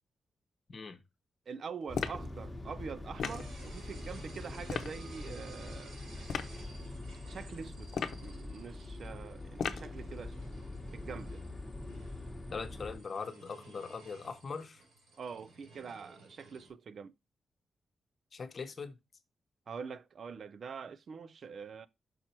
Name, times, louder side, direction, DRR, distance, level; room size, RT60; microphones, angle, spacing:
voice 1, 0.7-1.0 12.5-14.8 18.3-19.0, left 5 dB, 40° left, 1.0 m, -41 dB
voice 2, 1.5-6.0 7.2-7.9 8.2-10.4 10.9-11.4 15.2-17.1 19.7-21.9, right 6 dB, 45° right, 0.3 m, -44 dB
sound 1, 1.9-2.3 3.2-3.5 4.7-4.9 6.3-6.5 7.9-8.3 9.6-9.9, left 7 dB, 65° left, 0.8 m, -35 dB
sound 2, 1.9-13.0, left 2 dB, 10° left, 1.1 m, -44 dB
sound 3, 3.2-16.7, right 3 dB, 80° right, 3.5 m, -56 dB
6.1 x 4.5 x 4.4 m
wide cardioid pair, 170°, 0 cm